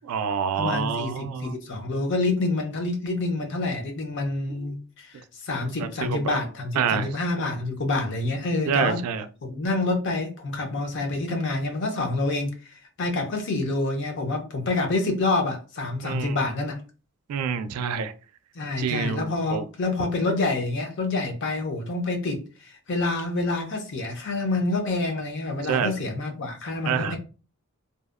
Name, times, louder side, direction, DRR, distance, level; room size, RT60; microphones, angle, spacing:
voice 1, 0.0-1.5 4.5-4.7 5.8-6.3 6.8-7.1 8.7-9.3 16.0-16.4 17.3-18.1 18.8-19.6 25.7-25.9 26.9-27.2, right 6 dB, 85° right, 0.3 m, -27 dB
voice 2, 0.6-9.0 9.4-12.5 13.0-16.8 18.5-27.2, left 2 dB, 55° left, 0.5 m, -27 dB
2.6 x 2.0 x 2.3 m
head